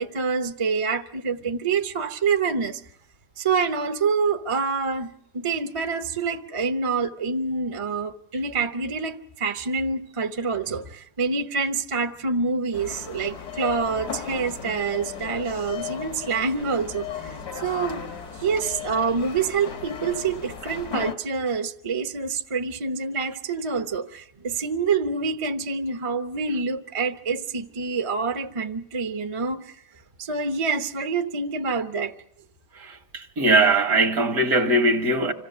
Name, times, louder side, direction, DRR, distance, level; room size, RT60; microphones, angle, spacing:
voice 1, 0.0-2.8 3.4-5.1 5.3-18.0 18.4-29.8 30.2-32.1, right 4 dB, 25° right, 0.7 m, -26 dB
sound 1, 12.7-21.2, left 7 dB, 70° left, 2.0 m, -36 dB
voice 2, 33.1-35.3, right 2 dB, 65° right, 2.0 m, -20 dB
26.5 x 15.5 x 6.7 m
omnidirectional pair, 1.7 m